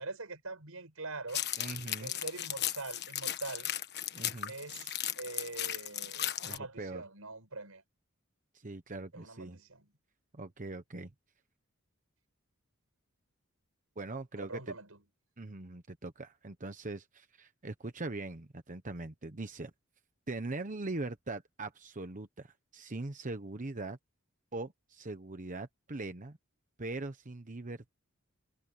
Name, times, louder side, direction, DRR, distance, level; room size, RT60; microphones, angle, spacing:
voice 1, 0.0-1.4 2.0-3.8 4.5-7.8 9.1-9.9 14.4-15.0, right 3 dB, 85° right, 5.2 m, -43 dB
sound 1, 1.3-6.6, left 12 dB, 50° left, 1.3 m, -36 dB
voice 2, 1.6-2.1 4.1-4.5 6.4-7.0 8.5-9.6 10.3-11.1 14.0-14.8 15.4-19.7 20.3-24.0 24.5-26.4 26.8-28.0, right 2 dB, 40° right, 1.1 m, -41 dB
head